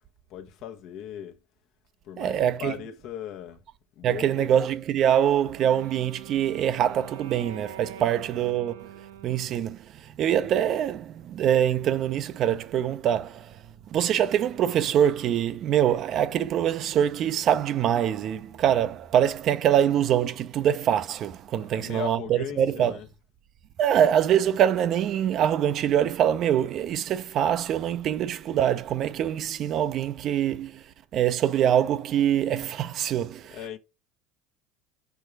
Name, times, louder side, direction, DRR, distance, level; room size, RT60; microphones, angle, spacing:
voice 1, 0.3-1.4 2.0-3.6 4.0-4.7 8.4-8.5 21.7-23.1 33.5-33.8, left 10 dB, 60° left, 0.9 m, -38 dB
voice 2, 2.2-2.7 4.0-23.0 23.8-33.8, right 10 dB, 50° right, 0.5 m, -24 dB
Wind instrument woodwind instrument, 5.3-9.8, right 9 dB, 85° right, 0.8 m, -45 dB
5.6 x 4.6 x 4.7 m
hypercardioid pair, 80°, 0 cm